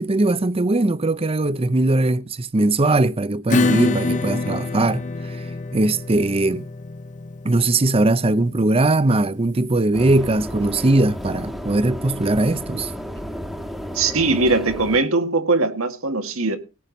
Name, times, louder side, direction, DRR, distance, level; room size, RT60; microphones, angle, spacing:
voice 1, 0.0-5.4 5.7-6.7 7.4-12.9, right 2 dB, 30° right, 0.6 m, -20 dB
Acoustic guitar / Strum, 3.5-10.7, left 2 dB, 35° left, 0.7 m, -26 dB
sound 1, 9.9-15.0, equal, ahead, 1.4 m, -32 dB
voice 2, 13.9-16.6, right 3 dB, 80° right, 1.9 m, -20 dB
17.5 x 8.8 x 4.0 m
head